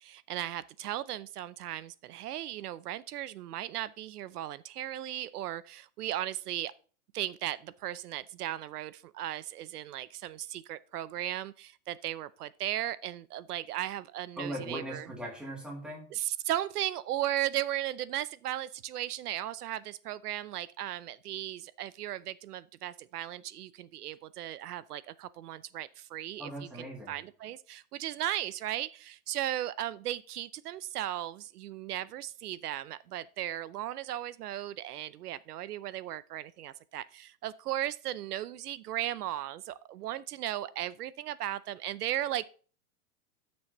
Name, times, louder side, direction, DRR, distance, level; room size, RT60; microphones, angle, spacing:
voice 1, 0.0-6.7 7.1-15.1 16.1-42.5, right 13 dB, 75° right, 0.6 m, -36 dB
voice 2, 14.4-16.1 26.4-27.2, right 1 dB, ahead, 1.2 m, -39 dB
12.5 x 6.3 x 3.0 m
supercardioid pair, 175°, 46 cm